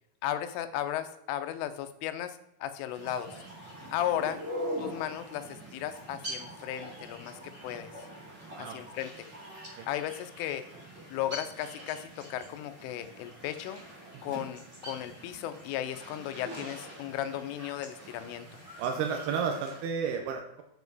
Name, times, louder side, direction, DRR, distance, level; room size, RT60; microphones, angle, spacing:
voice 1, 0.2-3.4 3.9-4.4 4.8-7.9 8.6-9.1 9.9-10.7 11.1-13.8 14.2-18.5, left 11 dB, 90° left, 10 dB, 3.2 m, -35 dB
sound 1, 2.8-19.9, equal, 25° right, 1.6 m, -44 dB
voice 2, 14.1-14.5 18.8-20.6, right 6 dB, 85° right, 3 dB, 2.3 m, -32 dB
8.4 x 7.2 x 4.0 m, 0.80 s
omnidirectional pair, 5.5 m